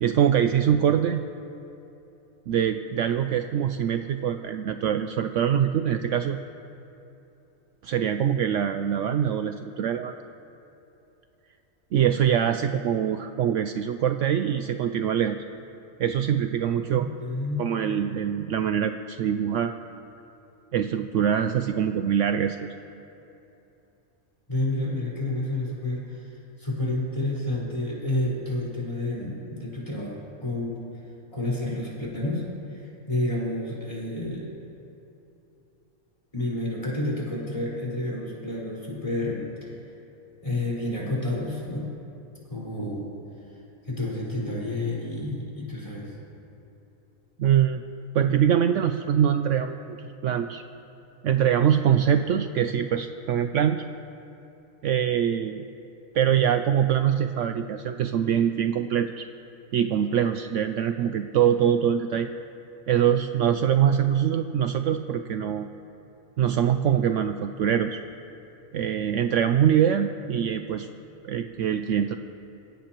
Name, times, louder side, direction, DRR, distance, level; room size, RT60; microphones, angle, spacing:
voice 1, 0.0-1.2 2.5-6.4 7.8-10.1 11.9-15.4 16.0-17.1 17.6-19.7 20.7-22.7 47.4-47.8 48.1-50.6 51.2-53.8 54.8-55.6 56.1-59.2 59.7-62.3 62.9-65.7 66.4-68.0 68.7-70.9 71.2-72.1, right 9 dB, 70° right, 8 dB, 0.8 m, -24 dB
voice 2, 16.9-17.6 24.5-30.8 31.3-32.4 32.7-34.5 36.3-39.8 40.4-41.9 42.5-43.1 43.8-46.2, left 1 dB, 20° left, -6 dB, 4.9 m, -30 dB
26.5 x 16.5 x 3.0 m, 2.8 s
omnidirectional pair, 1.5 m